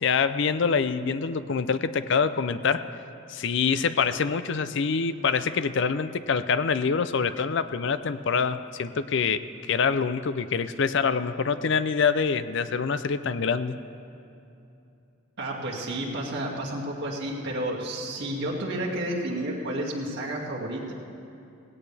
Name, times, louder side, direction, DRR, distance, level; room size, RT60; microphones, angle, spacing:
voice 1, 0.0-2.9 3.3-13.8, left 5 dB, 60° left, 13 dB, 0.5 m, -25 dB
voice 2, 15.4-20.9, right 1 dB, 55° right, -4 dB, 2.3 m, -31 dB
17.5 x 17.0 x 3.4 m, 2.8 s
head